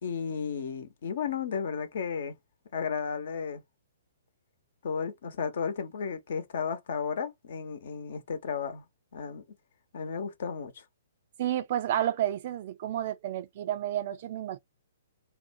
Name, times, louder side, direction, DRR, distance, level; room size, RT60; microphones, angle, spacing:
voice 1, 0.0-2.3 2.7-3.6 4.8-8.8 9.1-9.4 9.9-10.8, left 6 dB, 60° left, 0.9 m, -33 dB
voice 2, 11.4-14.6, right 11 dB, 50° right, 0.4 m, -31 dB
2.6 x 2.2 x 2.6 m
figure-of-eight pair, 125°, 0 cm